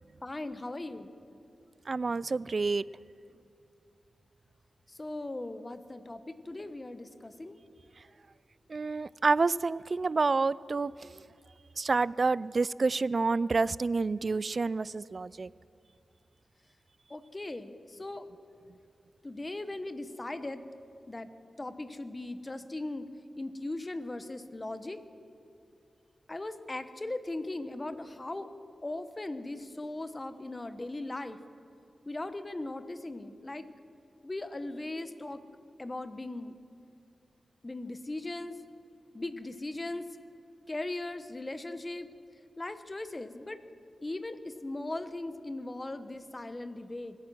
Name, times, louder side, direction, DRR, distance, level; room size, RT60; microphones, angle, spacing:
voice 1, 0.2-1.1 4.9-7.6 17.1-18.3 19.2-20.7 21.1-21.3 21.6-23.1 23.4-25.0 26.3-28.5 28.8-31.4 32.1-33.7 34.2-35.4 35.8-36.6 37.6-38.6 39.1-40.1 40.7-42.1 42.6-43.6 44.0-47.2, left 2 dB, 30° left, 11 dB, 1.0 m, -38 dB
voice 2, 1.9-2.8 8.7-11.2 11.8-15.5, right 4 dB, 55° right, 21 dB, 0.3 m, -28 dB
24.5 x 9.0 x 6.3 m, 2.6 s
cardioid pair, 50°, 0 cm